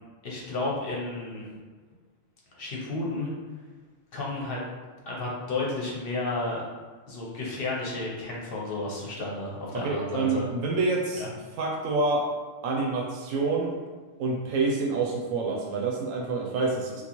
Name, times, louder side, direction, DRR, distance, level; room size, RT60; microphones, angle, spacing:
voice 1, 0.2-1.4 2.5-3.3 4.1-4.7 5.1-6.6 7.1-10.5 11.2-11.3, left 2 dB, 55° left, -4 dB, 0.9 m, -32 dB
voice 2, 9.7-11.2 11.6-12.3 12.6-13.7 14.2-17.0, right 3 dB, 90° right, -1 dB, 1.0 m, -27 dB
3.7 x 2.4 x 2.9 m, 1.4 s
omnidirectional pair, 1.3 m